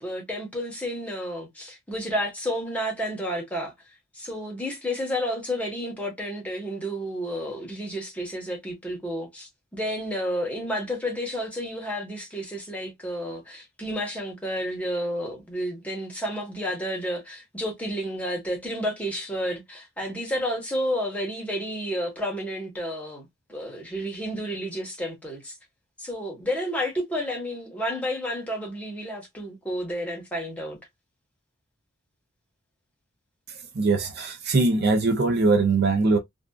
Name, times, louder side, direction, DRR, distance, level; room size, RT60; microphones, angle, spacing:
voice 1, 0.0-3.7 4.1-25.5 26.0-30.8, equal, 5° left, 1.0 m, -31 dB
voice 2, 33.7-36.2, right 3 dB, 50° right, 0.5 m, -21 dB
2.6 x 2.3 x 2.2 m
head